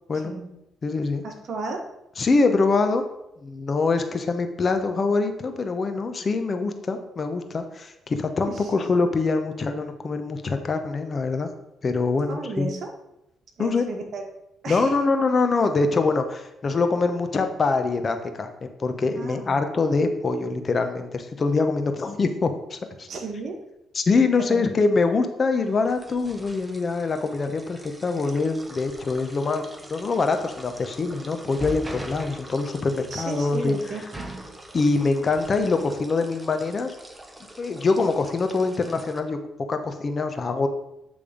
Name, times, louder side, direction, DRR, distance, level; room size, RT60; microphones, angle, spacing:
voice 1, 0.2-0.6 1.2-1.8 8.5-8.7 12.3-12.9 13.6-14.3 14.6-14.9 19.1-19.6 23.1-23.6 24.5-24.6 33.1-34.3, right 3 dB, 60° right, 3 dB, 1.4 m, -34 dB
voice 2, 0.8-1.2 2.2-3.0 3.4-11.5 11.8-12.7 13.6-13.8 14.7-23.1 23.9-33.7 34.7-36.9 37.6-39.4 39.7-40.7, left 3 dB, 40° left, 7 dB, 0.8 m, -24 dB
sound 1, 25.6-39.2, right 1 dB, 10° right, 0.9 m, -42 dB
8.9 x 3.4 x 5.1 m, 0.87 s
cardioid pair, 90°, 0 cm